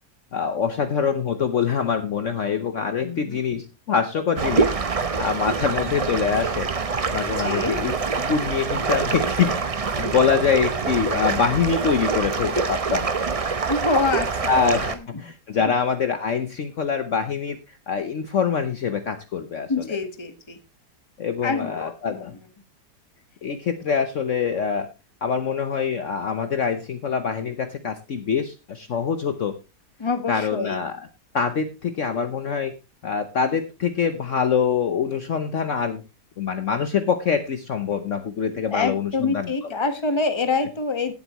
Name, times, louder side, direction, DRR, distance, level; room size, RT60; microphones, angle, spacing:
voice 1, 0.3-6.7 7.1-7.9 8.2-9.6 10.0-13.1 14.5-17.6 17.9-19.7 21.2-22.3 23.4-24.9 25.2-29.6 30.3-30.9 31.3-32.7 33.0-36.0 36.4-39.5, left 6 dB, 55° left, 9 dB, 1.1 m, -24 dB
voice 2, 3.0-3.4 7.3-7.8 13.7-14.5 14.8-15.0 19.7-20.6 21.4-21.7 22.1-22.3 30.0-30.8 38.6-41.1, left 4 dB, 20° left, 8 dB, 1.3 m, -26 dB
sound 1, 4.4-15.0, right 4 dB, 35° right, 0.5 m, -25 dB
17.5 x 8.0 x 3.0 m, 0.27 s
omnidirectional pair, 1.8 m